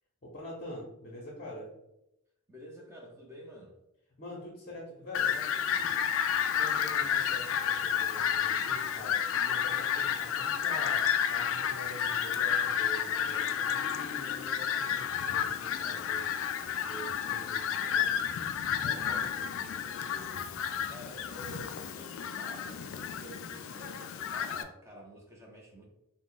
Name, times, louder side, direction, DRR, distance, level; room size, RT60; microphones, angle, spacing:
voice 1, 0.2-1.7 4.2-6.0 6.5-16.4 16.8-18.2, equal, 40° left, -3 dB, 0.7 m, -45 dB
voice 2, 2.5-3.8 18.7-25.9, equal, 15° right, -2 dB, 0.6 m, -49 dB
Fowl, 5.1-24.6, left 8 dB, 60° left, 0.3 m, -31 dB
3.4 x 2.0 x 3.9 m, 0.86 s
head